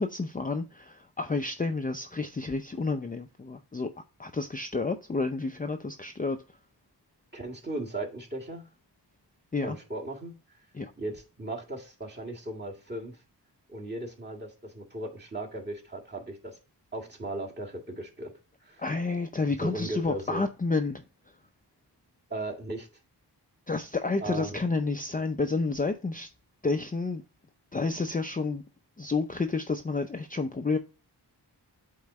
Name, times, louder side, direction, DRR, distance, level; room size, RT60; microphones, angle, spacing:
voice 1, 0.0-3.9 4.2-6.4 9.5-9.8 10.7-10.9 18.8-21.0 23.7-26.3 26.6-27.2 27.7-28.6 29.0-30.8, left 3 dB, 20° left, 0.5 m, -30 dB
voice 2, 7.3-8.6 9.6-10.3 11.0-13.2 13.7-16.6 16.9-18.3 18.6-18.8 19.6-20.5 22.3-22.9 24.2-24.6, right 2 dB, 25° right, 1.8 m, -37 dB
8.2 x 3.9 x 3.1 m
wide cardioid pair, 80°, 42 cm